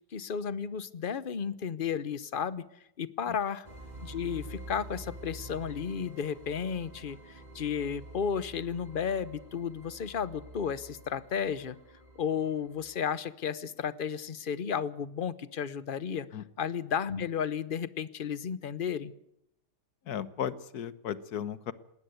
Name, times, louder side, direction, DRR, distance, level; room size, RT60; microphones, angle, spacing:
voice 1, 0.1-2.6 3.0-3.7 4.0-11.8 12.2-16.3 16.6-19.1, left 7 dB, 40° left, 17 dB, 0.9 m, -33 dB
sound 1, 3.6-12.9, right 1 dB, 25° right, 4.0 m, -48 dB
voice 2, 20.0-21.7, left 9 dB, 65° left, 16 dB, 1.5 m, -35 dB
20.0 x 17.5 x 8.1 m, 0.79 s
omnidirectional pair, 1.8 m